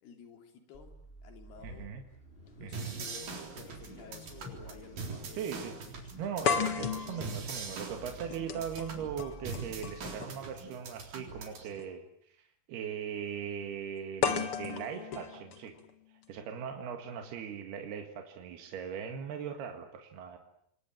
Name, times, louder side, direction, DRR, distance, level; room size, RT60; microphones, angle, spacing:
voice 1, 0.0-0.9 1.2-1.9 2.6-5.6 5.9-6.1, left 5 dB, 80° left, 4 dB, 5.3 m, -52 dB
Car / Idling / Accelerating revving vroom, 0.7-10.2, right 1 dB, 10° left, 7.2 m, -53 dB
voice 2, 1.6-2.0 2.6-3.1 5.3-5.8 6.2-15.8 16.3-20.4, right 7 dB, 80° right, 4 dB, 3.9 m, -40 dB
sound 1, 2.7-11.7, right 4 dB, 60° right, 5.5 m, -43 dB
sound 2, 3.2-3.3 4.5-4.6 5.0-5.1 6.4-10.5 11.7-11.8 14.2-16.2, left 7 dB, 50° left, 1.9 m, -35 dB
27.5 x 22.0 x 9.0 m, 0.73 s
omnidirectional pair, 4.6 m